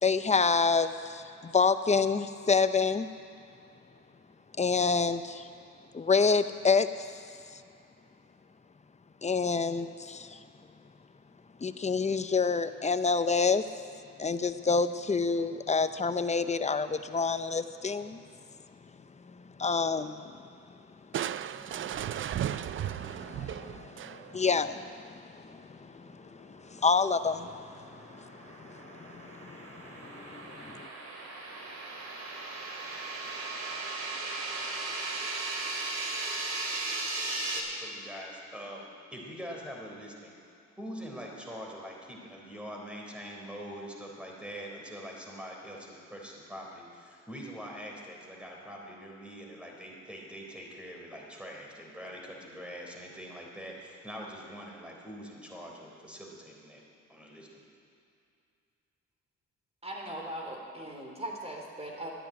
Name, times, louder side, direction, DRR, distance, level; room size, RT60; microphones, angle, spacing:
voice 1, 0.0-3.1 4.6-5.5 5.9-7.1 9.2-10.4 11.6-13.6 14.2-18.2 19.4-20.3 22.5-30.9, left 4 dB, 25° left, 11 dB, 0.7 m, -28 dB
Crushing, 21.1-24.5, right 10 dB, 45° right, 0.4 m, -35 dB
sound 1, 27.2-37.6, right 3 dB, 60° right, 2.9 m, -37 dB
voice 2, 37.5-38.8 39.1-40.3 40.8-56.8 57.1-57.6, equal, 5° right, -1 dB, 3.7 m, -44 dB
voice 3, 59.8-62.1, right 1 dB, 20° right, 0 dB, 3.6 m, -39 dB
13.0 x 10.0 x 9.1 m, 2.5 s
cardioid pair, 90°, 30 cm